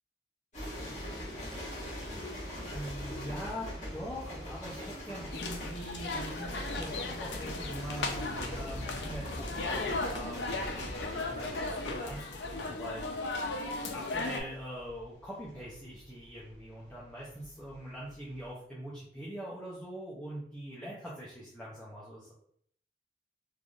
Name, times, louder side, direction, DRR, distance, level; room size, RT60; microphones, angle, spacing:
sound 1, 0.5-17.8 18.0-18.5, equal, 40° left, 1.1 m, -42 dB
voice 1, 2.7-13.4 13.9-22.3, equal, 5° left, -8 dB, 0.5 m, -43 dB
sound 2, 5.3-14.4, left 3 dB, 75° left, 0.4 m, -36 dB
3.2 x 2.5 x 2.3 m, 0.64 s
head